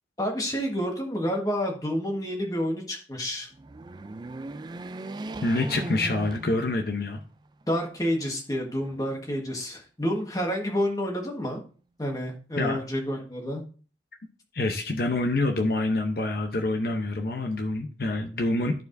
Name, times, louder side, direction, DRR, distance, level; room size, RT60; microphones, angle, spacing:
voice 1, 0.2-3.5 7.7-11.6 12.0-13.6, equal, 20° left, 1 dB, 1.4 m, -29 dB
sound 1, 3.5-7.1 7.6-7.7 8.8-9.6, right 2 dB, 25° right, 0.3 m, -38 dB
voice 2, 5.4-7.2 12.6-12.8 14.5-18.7, left 2 dB, 60° left, 4 dB, 0.8 m, -26 dB
13.5 x 4.7 x 2.6 m, 0.39 s
head